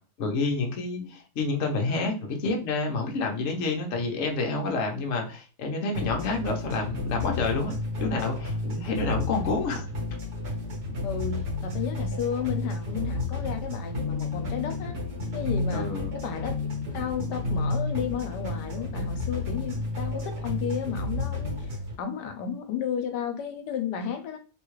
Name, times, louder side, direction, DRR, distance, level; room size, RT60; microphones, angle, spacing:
voice 1, 0.2-9.9 15.7-16.1, left 3 dB, 55° left, 2 dB, 0.9 m, -29 dB
sound 1, 5.9-21.9, left 2 dB, 70° right, 1.8 m, -31 dB
voice 2, 11.0-14.9 15.3-15.9 16.1-16.6 16.9-24.4, left 7 dB, 80° left, 6 dB, 1.2 m, -33 dB
3.5 x 2.3 x 3.1 m, 0.36 s
omnidirectional pair, 1.8 m